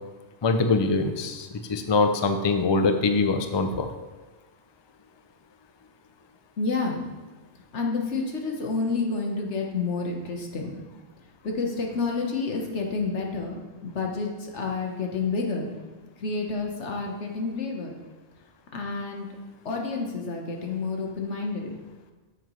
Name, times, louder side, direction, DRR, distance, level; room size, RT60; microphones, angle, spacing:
voice 1, 0.4-3.9, left 3 dB, 35° left, 7 dB, 0.5 m, -23 dB
voice 2, 6.6-7.1 7.7-10.8 11.4-15.7 16.2-17.9 18.7-19.3 19.6-21.7, left 4 dB, 85° left, 1 dB, 1.5 m, -29 dB
9.1 x 8.0 x 3.2 m, 1.3 s
omnidirectional pair, 1.2 m